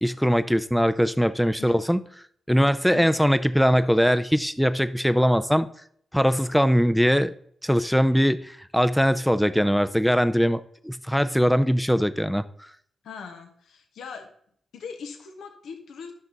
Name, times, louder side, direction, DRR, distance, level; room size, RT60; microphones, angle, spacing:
voice 1, 0.0-2.0 2.5-5.7 6.1-7.3 7.6-12.5, equal, ahead, 0.7 m, -21 dB
voice 2, 13.0-14.3 14.7-16.1, left 6 dB, 80° left, 1.3 m, -40 dB
11.0 x 5.9 x 4.0 m
supercardioid pair, 40°, 0 cm